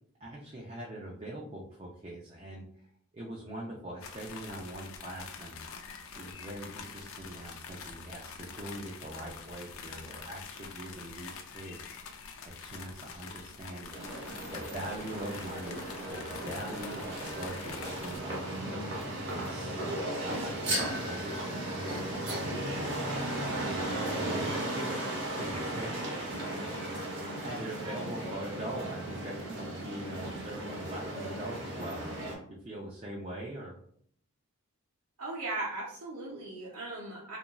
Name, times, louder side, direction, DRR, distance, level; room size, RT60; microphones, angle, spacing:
voice 1, 0.2-2.9 3.1-5.6 6.2-12.0 12.4-13.9 14.5-19.0 19.3-19.7 20.0-26.1 26.6-27.0 27.4-32.2 32.5-33.8, right 1 dB, 25° right, -3 dB, 0.4 m, -42 dB
sound 1, 4.0-18.2, left 5 dB, 65° left, 0.4 m, -46 dB
sound 2, 13.9-32.4, right 1 dB, 50° right, 0.9 m, -36 dB
voice 2, 35.2-37.4, right 2 dB, 80° right, -6 dB, 0.7 m, -38 dB
2.9 x 2.4 x 2.2 m, 0.64 s
head